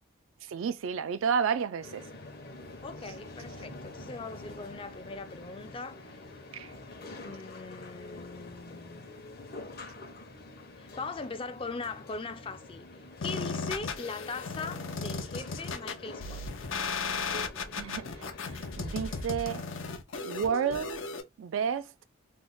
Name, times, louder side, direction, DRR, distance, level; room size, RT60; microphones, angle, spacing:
voice 1, 0.4-2.1 6.5-6.7 17.8-19.6 20.2-21.0 21.4-21.9, right 7 dB, 80° right, 0.4 m, -31 dB
sound 1, 1.8-19.2, left 2 dB, 50° left, 0.8 m, -46 dB
voice 2, 2.8-6.2 7.2-9.1 10.8-12.9 13.2-16.4, left 4 dB, 25° left, 0.4 m, -40 dB
sound 2, 13.2-21.2, left 4 dB, 80° left, 0.7 m, -36 dB
3.2 x 2.1 x 3.8 m
head